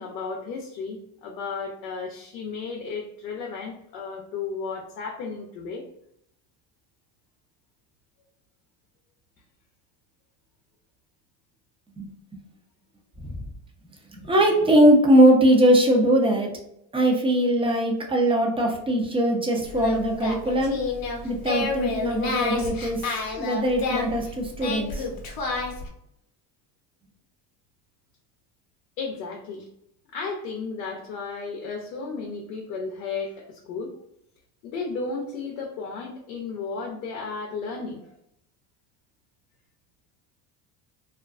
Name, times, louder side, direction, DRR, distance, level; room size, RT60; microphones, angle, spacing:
voice 1, 0.0-5.8 29.0-29.7 30.1-33.9 34.6-38.0, left 4 dB, 85° left, 1 dB, 0.6 m, -34 dB
voice 2, 14.1-16.5 16.9-20.8 21.2-23.0 23.3-25.1, right 1 dB, 10° right, 1 dB, 0.5 m, -20 dB
Singing, 19.6-25.9, left 4 dB, 45° left, 0.7 m, -30 dB
2.5 x 2.2 x 2.3 m, 0.76 s
supercardioid pair, 85°, 50 cm